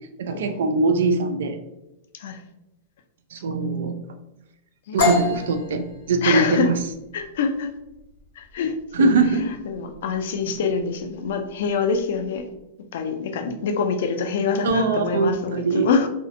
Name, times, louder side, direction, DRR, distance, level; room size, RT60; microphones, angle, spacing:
voice 1, 0.2-1.6 3.3-4.0 4.9-6.7 8.9-9.5 14.6-15.9, right 3 dB, 85° right, 7 dB, 0.3 m, -22 dB
sound 1, 5.0-12.6, left 4 dB, 90° left, 1.0 m, -30 dB
voice 2, 6.2-6.7 7.1-7.7 8.4-12.5 12.9-16.1, left 5 dB, 70° left, 6 dB, 0.4 m, -25 dB
2.6 x 2.1 x 2.5 m, 0.88 s
supercardioid pair, 155°, 0 cm